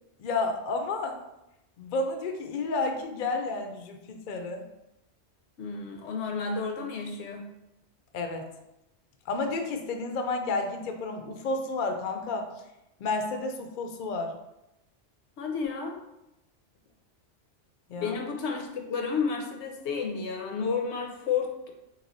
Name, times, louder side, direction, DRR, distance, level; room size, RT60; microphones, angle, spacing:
voice 1, 0.2-1.2 1.8-4.6 8.1-8.5 9.3-12.5 13.0-14.3 17.9-18.2, left 3 dB, 55° left, 5 dB, 0.5 m, -31 dB
voice 2, 5.6-7.5 15.4-16.0 18.0-21.7, left 5 dB, 75° left, 3 dB, 0.9 m, -31 dB
3.3 x 3.1 x 3.9 m, 0.90 s
omnidirectional pair, 1.2 m